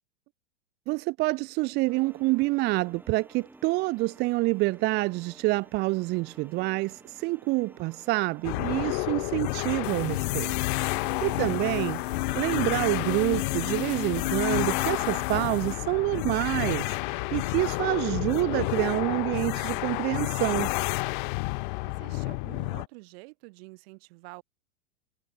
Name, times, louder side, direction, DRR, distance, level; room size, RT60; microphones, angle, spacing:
voice 1, 0.9-10.5 10.9-12.0 12.3-20.7, right 23 dB, 30° right, 0.5 m, -27 dB
sound 1, 1.9-13.1, right 2 dB, 5° right, 3.3 m, -54 dB
sound 2, 8.4-22.9, left 29 dB, 40° left, 0.6 m, -30 dB
sound 3, 9.8-15.7, left 13 dB, 85° left, 2.7 m, -34 dB
voice 2, 11.0-11.6 21.9-24.4, right 27 dB, 50° right, 5.8 m, -47 dB
supercardioid pair, 150°, 37 cm